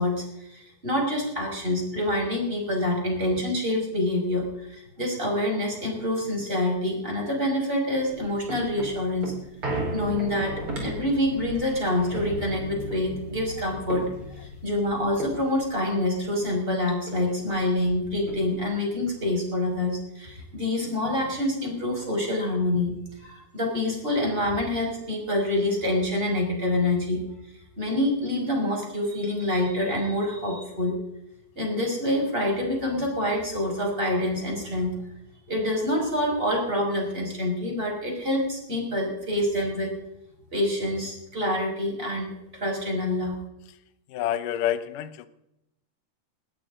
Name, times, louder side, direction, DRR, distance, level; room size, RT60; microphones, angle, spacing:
voice 1, 0.0-9.3 9.9-14.1 14.4-22.9 23.2-27.2 27.8-30.9 31.6-35.0 35.5-39.9 40.5-43.3, left 1 dB, 10° right, -1 dB, 5.8 m, -26 dB
sound 1, 8.0-16.7 17.1-17.2 17.4-18.8 19.3-19.4, right 1 dB, 30° right, 5.2 m, -36 dB
voice 2, 44.1-45.3, left 11 dB, 70° left, 12 dB, 2.0 m, -28 dB
20.0 x 18.0 x 3.9 m, 0.85 s
omnidirectional pair, 5.0 m